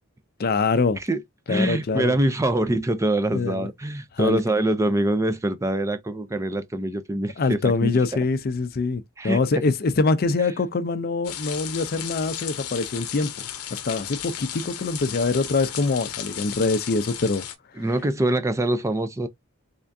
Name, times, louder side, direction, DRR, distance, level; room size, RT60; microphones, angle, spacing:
voice 1, 0.4-1.0 1.5-2.2 3.3-3.7 4.1-4.4 7.4-13.3 13.7-17.5 17.8-17.9, left 3 dB, 45° left, 0.5 m, -24 dB
voice 2, 1.5-7.9 9.2-9.4 17.8-19.3, right 1 dB, 15° right, 0.4 m, -24 dB
sound 1, 11.2-17.5, left 10 dB, 85° left, 0.8 m, -35 dB
3.6 x 3.4 x 2.6 m
head